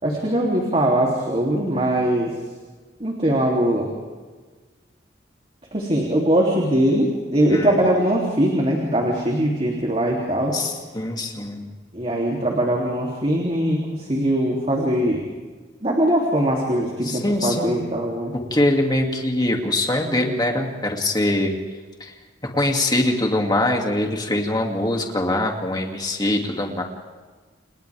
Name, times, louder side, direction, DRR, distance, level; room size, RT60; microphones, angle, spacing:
voice 1, 0.0-2.3 3.0-3.9 5.7-10.6 11.9-15.2 15.8-18.3, right 1 dB, 35° right, -2 dB, 3.2 m, -21 dB
voice 2, 10.5-11.7 17.0-17.8 18.3-21.6 22.0-22.1 22.4-26.8, left 1 dB, 20° left, 2 dB, 2.7 m, -23 dB
29.5 x 29.0 x 3.6 m, 1.4 s
head